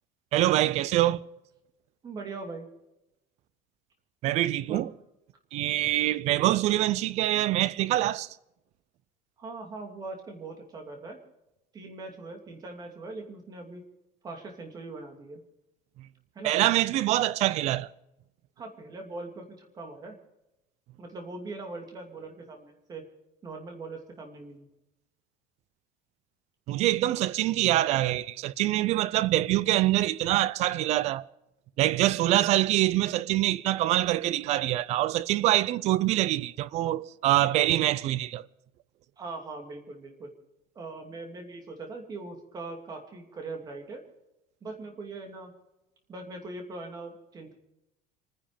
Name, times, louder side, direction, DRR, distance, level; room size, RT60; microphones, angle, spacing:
voice 1, 0.3-1.3 4.2-4.9 5.5-8.3 16.4-17.9 26.7-31.3 31.8-38.4, right 15 dB, 40° right, 0.5 m, -25 dB
voice 2, 2.0-2.7 4.7-4.9 9.4-11.2 11.7-13.8 14.2-15.4 16.3-16.6 18.6-20.2 21.0-23.0 23.4-24.7 39.2-40.3 40.7-44.0 44.6-45.5 46.1-47.5, right 3 dB, 20° right, 2.6 m, -41 dB
27.0 x 10.0 x 5.1 m
cardioid pair, 170°, 18 cm